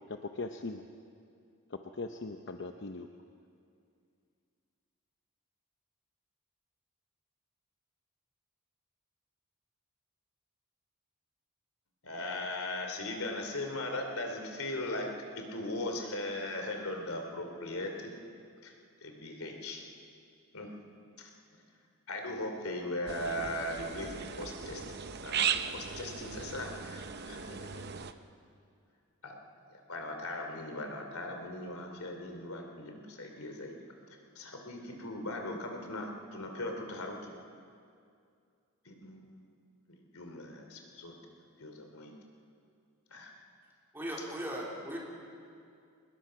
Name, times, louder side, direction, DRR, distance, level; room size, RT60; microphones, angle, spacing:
voice 1, 0.1-0.9 1.7-3.1, left 3 dB, 55° left, 5 dB, 0.7 m, -40 dB
voice 2, 12.0-18.1 18.6-18.7 19.0-19.8 20.5-20.7 21.2-21.3 22.1-27.9 29.2-29.4 29.7-33.7 34.3-37.2 38.8-39.4 39.9-41.1 41.6-42.1 43.1-43.3, left 1 dB, 80° left, 3 dB, 2.9 m, -39 dB
sound 1, 23.1-28.1, right 7 dB, 50° right, 0.7 m, -37 dB
voice 3, 43.9-45.0, equal, 10° right, -3 dB, 3.5 m, -38 dB
25.0 x 20.5 x 5.8 m, 2.4 s
head